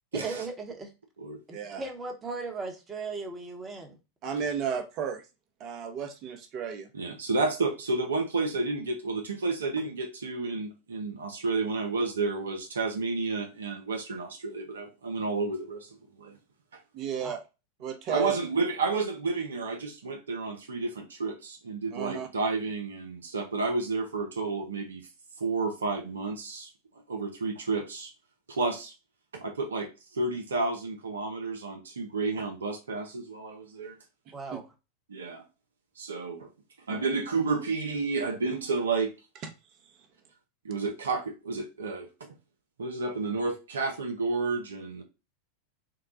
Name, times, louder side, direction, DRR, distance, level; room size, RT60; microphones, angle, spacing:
voice 1, 0.1-0.9 1.5-4.0 17.2-17.3 34.3-34.6, right 4 dB, 20° right, 1.0 m, -37 dB
voice 2, 4.2-5.2 5.6-6.9 16.9-17.4 17.8-18.4 21.9-22.3, right 7 dB, 45° right, 0.9 m, -33 dB
voice 3, 6.9-15.9 16.2-16.4 18.1-25.1 25.4-26.7 27.1-28.1 28.5-28.9 29.3-34.0 35.1-35.4 36.0-36.5 36.9-39.1 40.6-42.1 42.8-45.0, right 3 dB, 80° right, 0.6 m, -31 dB
3.8 x 2.2 x 3.8 m
hypercardioid pair, 90°, 0 cm